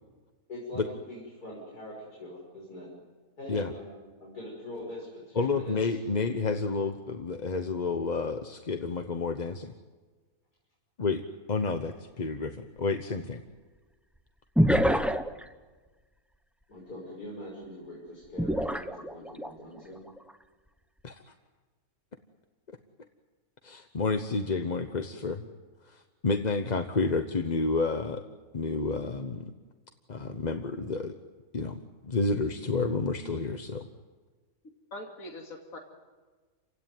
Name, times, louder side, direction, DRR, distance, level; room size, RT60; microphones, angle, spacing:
voice 1, 0.5-2.9 3.4-6.0 16.7-20.0, left 1 dB, 90° left, -3 dB, 6.5 m, -43 dB
voice 2, 5.3-9.7 11.0-11.2 11.5-13.4 21.0-21.2 23.6-25.4 25.8-28.2 28.5-29.5 30.1-31.1 31.5-33.9, left 3 dB, 35° left, 7 dB, 1.0 m, -30 dB
sound 1, 11.7-11.8 14.6-15.4 18.4-19.5 20.1-20.3, equal, ahead, 0.6 m, -25 dB
voice 3, 34.6-35.8, left 1 dB, 65° left, 1 dB, 3.0 m, -43 dB
30.0 x 16.5 x 9.4 m, 1.4 s
omnidirectional pair, 1.6 m